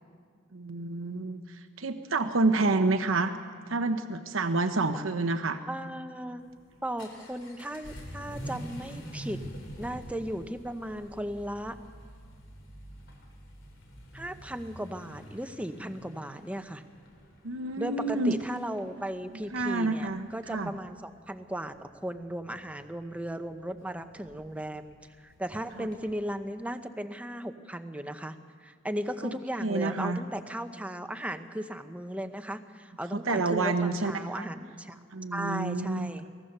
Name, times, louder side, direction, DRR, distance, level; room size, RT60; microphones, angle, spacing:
voice 1, 0.5-1.4 1.8-3.3 3.7-5.6 17.4-18.4 19.5-20.7 29.2-29.4 29.6-30.2 33.1-34.5 35.1-36.3, right 3 dB, 85° right, 8 dB, 1.0 m, -28 dB
voice 2, 5.7-6.4 6.8-9.4 9.8-11.8 14.1-16.8 17.8-35.0 35.3-36.3, right 1 dB, 5° right, 8 dB, 0.8 m, -36 dB
Vehicle / Accelerating revving vroom, 6.4-26.2, equal, 70° left, 3.6 m, -47 dB
23.0 x 17.5 x 6.7 m, 2.1 s
head